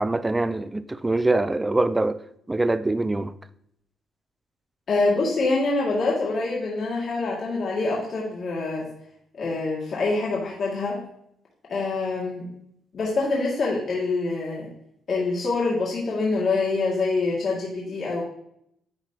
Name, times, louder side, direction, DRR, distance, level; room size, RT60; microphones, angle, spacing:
voice 1, 0.0-2.2 2.5-3.3, right 2 dB, 15° right, 0.4 m, -23 dB
voice 2, 4.9-8.9 9.4-11.0 11.7-12.4 12.9-14.7 15.1-18.2, left 3 dB, 55° left, 1.9 m, -25 dB
10.5 x 4.1 x 2.8 m
cardioid pair, 90°, 0 cm